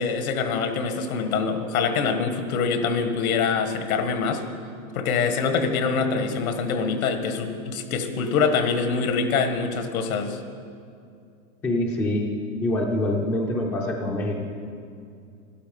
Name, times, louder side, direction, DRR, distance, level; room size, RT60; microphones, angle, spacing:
voice 1, 0.0-4.4 4.9-10.4, left 5 dB, 80° left, 7 dB, 1.7 m, -24 dB
voice 2, 11.6-12.3 12.6-14.4, left 1 dB, 5° left, 0 dB, 0.4 m, -25 dB
12.0 x 12.0 x 6.9 m, 2.4 s
supercardioid pair, 160°, 42 cm